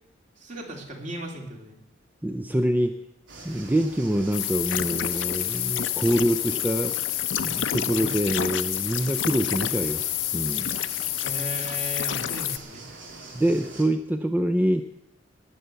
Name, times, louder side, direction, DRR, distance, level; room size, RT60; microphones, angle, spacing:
voice 1, 0.4-1.8 8.0-8.2 11.2-12.9, right 1 dB, 40° right, 1 dB, 3.0 m, -36 dB
voice 2, 2.2-3.0 3.4-6.9 7.4-10.1 10.3-10.7 13.3-14.8, right 1 dB, 10° right, 8 dB, 0.5 m, -25 dB
sound 1, 3.3-13.8, right 3 dB, 80° right, 2.8 m, -44 dB
sound 2, 4.3-12.6, left 12 dB, 75° left, 0.6 m, -28 dB
19.5 x 6.9 x 7.7 m, 0.83 s
head